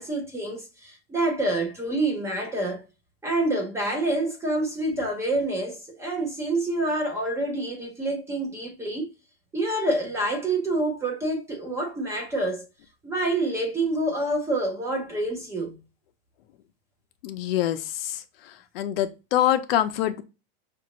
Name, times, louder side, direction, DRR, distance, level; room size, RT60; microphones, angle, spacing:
voice 1, 0.0-2.8 3.2-9.1 9.5-12.6 13.0-15.8, right 2 dB, 10° right, 0.6 m, -27 dB
voice 2, 17.2-17.8 18.8-20.2, left 12 dB, 65° left, 0.7 m, -24 dB
5.3 x 2.5 x 2.9 m
supercardioid pair, 170°, 31 cm